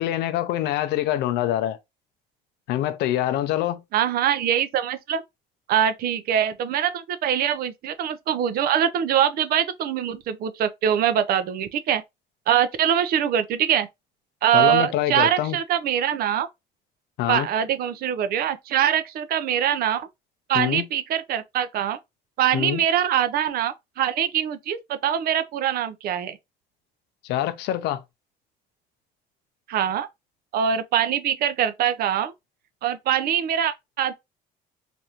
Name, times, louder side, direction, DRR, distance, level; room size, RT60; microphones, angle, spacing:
voice 1, 0.0-1.8 2.7-3.8 14.5-15.6 17.2-17.5 20.5-20.8 22.5-22.8 27.3-28.0, left 13 dB, 85° left, 0.5 m, -25 dB
voice 2, 3.9-5.2 5.7-12.0 12.5-13.9 14.4-16.5 17.3-20.1 20.5-22.0 22.4-26.4 29.7-30.1 30.5-32.3 32.8-34.1, right 9 dB, 65° right, 0.5 m, -23 dB
3.4 x 2.6 x 2.8 m
cardioid pair, 110°, 17 cm